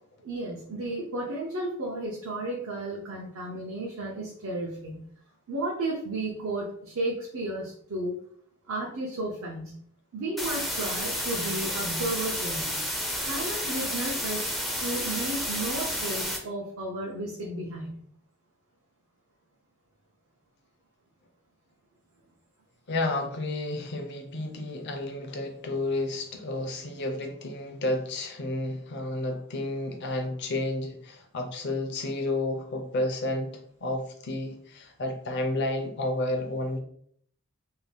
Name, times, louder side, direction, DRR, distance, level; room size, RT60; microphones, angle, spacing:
voice 1, 0.2-5.0 5.5-8.2 8.7-9.8 10.1-12.8 13.2-14.5 14.8-18.0, right 1 dB, 75° right, -3 dB, 0.6 m, -33 dB
sound 1, 10.4-16.4, equal, ahead, 0.4 m, -31 dB
voice 2, 22.9-36.8, left 2 dB, 55° left, 4 dB, 0.5 m, -31 dB
2.7 x 2.1 x 3.2 m, 0.64 s
head